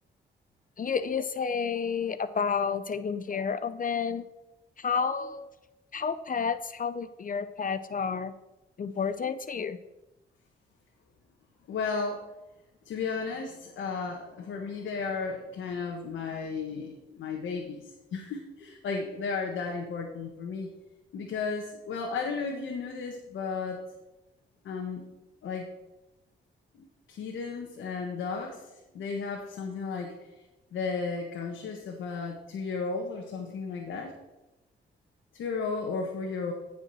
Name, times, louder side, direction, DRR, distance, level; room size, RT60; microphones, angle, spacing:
voice 1, 0.8-4.2 4.8-5.5 5.9-8.3 8.8-9.8, left 6 dB, 45° left, 13 dB, 0.6 m, -30 dB
voice 2, 11.7-12.2 12.8-20.7 21.1-23.8 24.6-25.0 25.4-25.7 26.8-28.6 28.9-30.1 30.7-34.1 35.3-36.5, left 4 dB, 85° left, 1 dB, 1.4 m, -34 dB
15.0 x 5.1 x 6.3 m, 1.0 s
cardioid pair, 65°, 19 cm